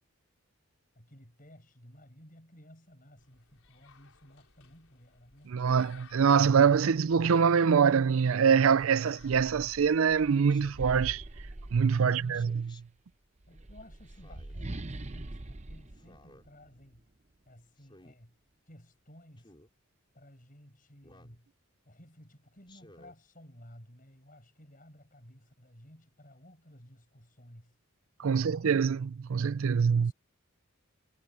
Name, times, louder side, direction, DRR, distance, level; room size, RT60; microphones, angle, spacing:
voice 1, 0.9-5.6 12.0-12.5 13.5-17.1 17.4-18.4 18.7-19.5 20.1-21.5 21.8-27.8 28.2-28.6 29.7-30.1, equal, 40° left, 6.7 m, -55 dB
sound 1, 3.2-10.9, left 5 dB, 75° left, 4.5 m, -60 dB
voice 2, 5.5-11.2 11.7-12.6 28.2-30.1, right 6 dB, 70° right, 0.4 m, -24 dB
Speech synthesizer, 5.6-5.9 7.0-7.6 9.0-9.3 10.5-11.0 12.3-12.8 14.1-14.6 15.9-16.5 17.8-18.2 19.4-19.7 21.0-21.4 22.7-23.2, left 1 dB, 20° left, 5.5 m, -57 dB
sound 2, 9.2-12.4 13.4-17.0, right 1 dB, 30° right, 0.8 m, -43 dB
head